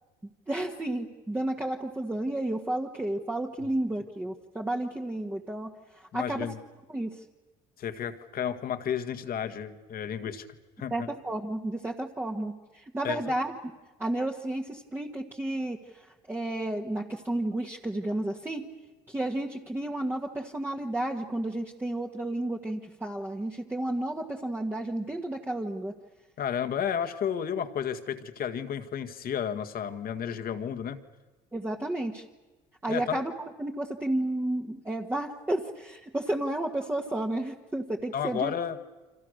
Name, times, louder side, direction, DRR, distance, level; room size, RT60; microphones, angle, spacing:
voice 1, 0.5-6.5 6.9-7.2 10.9-13.6 14.0-18.6 19.1-25.9 31.5-32.2 32.8-33.3 33.6-38.5, right 1 dB, 10° right, -1 dB, 1.7 m, -32 dB
voice 2, 6.1-6.6 7.8-10.5 10.8-11.1 13.0-13.2 26.4-31.0 32.9-33.2 38.1-38.8, left 8 dB, 50° left, 7 dB, 1.9 m, -32 dB
30.0 x 25.5 x 6.6 m, 1.2 s
cardioid pair, 100°, 19 cm